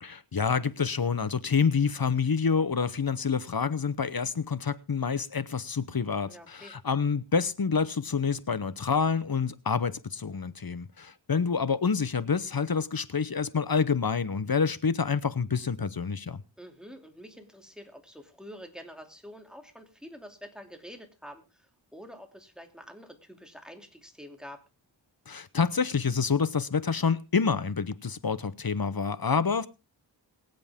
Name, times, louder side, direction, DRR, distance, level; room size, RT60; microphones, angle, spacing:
voice 1, 0.0-16.4 25.3-29.7, left 5 dB, 50° left, 0.9 m, -27 dB
voice 2, 6.3-6.7 16.6-24.6, equal, ahead, 2.8 m, -47 dB
23.0 x 7.9 x 3.6 m
wide cardioid pair, 50°, 47 cm